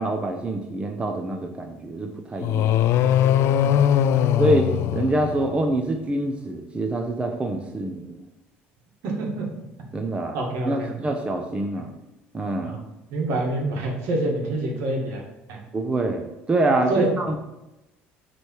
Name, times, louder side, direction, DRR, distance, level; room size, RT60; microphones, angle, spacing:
voice 1, 0.0-2.8 4.0-8.3 9.9-10.4 10.6-11.9 12.3-12.7 15.7-17.4, right 2 dB, 25° right, 3 dB, 0.8 m, -25 dB
sound 1, 2.4-5.7, left 10 dB, 65° left, 0.3 m, -20 dB
voice 2, 3.5-4.3 9.0-9.5 10.3-10.9 12.6-12.8 13.1-15.2 15.5-15.6 16.9-17.1, right 2 dB, 70° right, -1 dB, 2.0 m, -27 dB
8.1 x 3.4 x 4.7 m, 0.93 s
supercardioid pair, 90°, 5 cm